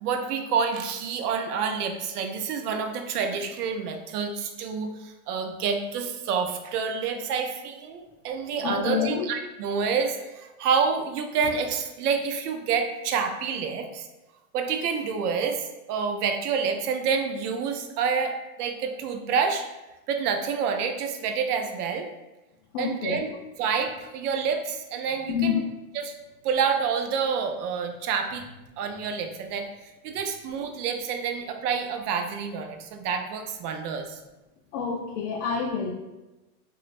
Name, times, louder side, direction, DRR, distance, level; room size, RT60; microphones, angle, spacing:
voice 1, 0.0-14.1 14.5-19.7 20.1-22.1 22.8-23.3 23.6-25.6 25.9-26.1 26.4-28.5 28.8-34.2, right 6 dB, 75° right, 5 dB, 0.6 m, -28 dB
voice 2, 8.6-9.3 22.7-23.2 25.3-25.6 34.7-35.9, left 7 dB, 55° left, -1 dB, 0.5 m, -27 dB
3.0 x 2.3 x 2.4 m, 1.0 s
supercardioid pair, 135°, 46 cm